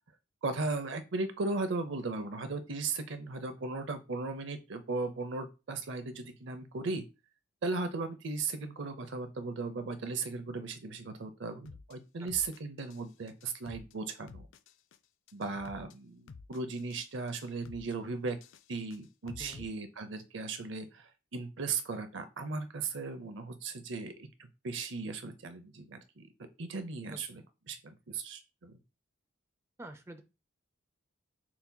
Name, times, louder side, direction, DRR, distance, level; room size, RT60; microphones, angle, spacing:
voice 1, 0.4-7.0 7.6-14.5 15.3-18.4 18.7-24.3 24.6-26.3 26.6-27.4 27.7-28.7, right 3 dB, 65° right, 9 dB, 0.6 m, -37 dB
sound 1, 11.7-11.9 12.3-13.0 13.3-13.9 14.3-15.0 15.3-15.9 16.3-17.0 17.3-17.9 18.3-19.7, left 4 dB, 70° left, 0.3 m, -50 dB
voice 2, 19.4-19.7 27.1-27.2 29.8-30.2, right 1 dB, 15° right, 7 dB, 0.4 m, -47 dB
5.8 x 2.8 x 2.2 m, 0.28 s
head